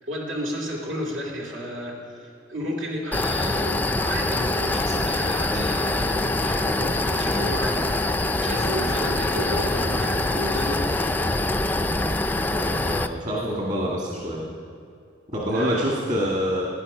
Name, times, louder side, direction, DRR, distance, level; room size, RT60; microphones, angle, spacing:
voice 1, 0.0-8.0 8.4-11.1 15.5-15.8, equal, 75° right, -3 dB, 2.3 m, -32 dB
sound 1, 3.1-13.1, left 2 dB, 10° left, 0.4 m, -24 dB
voice 2, 12.5-14.4 15.3-16.7, equal, 40° right, -4 dB, 1.9 m, -26 dB
17.5 x 10.0 x 5.5 m, 2.4 s
head